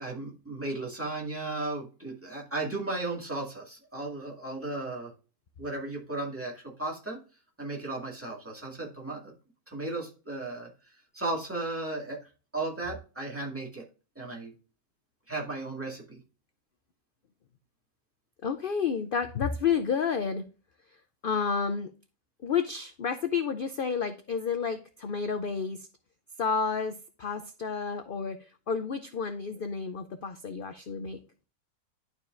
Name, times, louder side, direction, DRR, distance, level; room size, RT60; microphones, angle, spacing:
voice 1, 0.0-5.1 5.6-7.2 7.6-9.3 9.7-10.7 11.1-12.2 12.5-13.8 14.2-14.5 15.3-16.2, right 2 dB, 10° right, -3 dB, 2.0 m, -35 dB
voice 2, 18.4-20.4 21.2-21.9 22.4-25.9 26.4-31.2, left 6 dB, 85° left, 9 dB, 0.4 m, -30 dB
11.5 x 4.6 x 2.5 m, 0.34 s
omnidirectional pair, 1.6 m